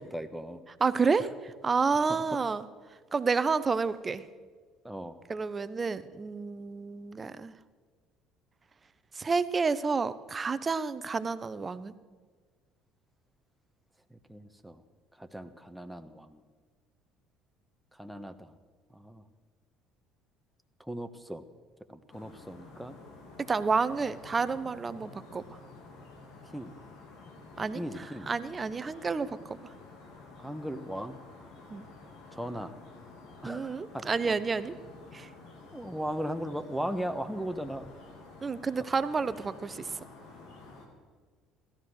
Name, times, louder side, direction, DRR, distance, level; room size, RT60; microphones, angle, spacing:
voice 1, 0.1-0.6 2.1-2.2 4.8-5.2 14.1-14.8 15.2-16.4 17.9-18.5 18.9-19.2 20.8-21.4 21.9-23.0 26.5-26.7 27.7-28.3 30.4-31.2 32.3-32.7 33.4-34.1 35.7-37.9, equal, 5° right, 8 dB, 1.3 m, -37 dB
voice 2, 0.8-2.6 3.1-4.2 5.3-7.6 9.1-11.9 23.4-25.6 27.6-29.7 31.7-31.9 33.4-34.8 35.1-35.3 38.4-40.0, right 4 dB, 30° right, 15 dB, 0.9 m, -30 dB
sound 1, 22.1-40.9, left 3 dB, 65° left, 3.1 m, -51 dB
16.5 x 13.5 x 6.5 m, 1.5 s
hypercardioid pair, 70°, 0 cm